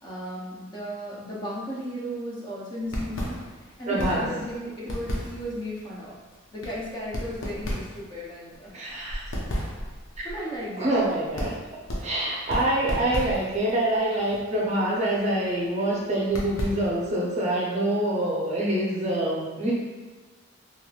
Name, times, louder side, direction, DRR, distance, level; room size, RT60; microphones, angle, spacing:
voice 1, 0.0-3.3 3.8-6.2 6.5-8.7 10.2-10.9, equal, 20° left, -6 dB, 0.5 m, -35 dB
sound 1, 2.8-17.2, equal, 75° left, 0.6 m, -35 dB
voice 2, 3.9-4.3 8.7-9.2 10.8-11.5 12.0-19.7, right 1 dB, 35° right, -4 dB, 0.5 m, -25 dB
3.0 x 2.9 x 2.3 m, 1.3 s
head